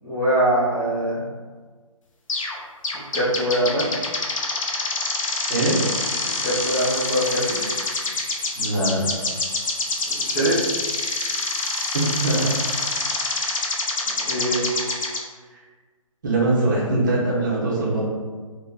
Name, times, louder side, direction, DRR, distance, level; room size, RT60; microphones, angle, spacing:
voice 1, 0.0-1.1 3.1-3.8 6.4-7.6 10.0-10.5 14.1-14.6, right 1 dB, 10° left, -13 dB, 0.4 m, -23 dB
sound 1, 2.3-2.6 2.8-15.2, left 3 dB, 65° left, 0.5 m, -26 dB
voice 2, 8.6-9.0 11.9-12.5 16.2-18.0, right 2 dB, 35° right, -4 dB, 0.7 m, -22 dB
2.7 x 2.1 x 3.5 m, 1.4 s
hypercardioid pair, 160°, 18 cm